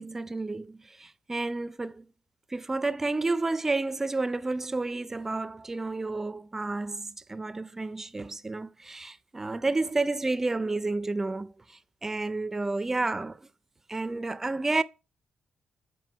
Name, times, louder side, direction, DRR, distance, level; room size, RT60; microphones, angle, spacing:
voice 1, 0.0-2.1 2.5-13.4 13.9-14.8, right 3 dB, 15° right, 0.4 m, -31 dB
7.7 x 5.1 x 5.6 m
cardioid pair, 135°, 2 cm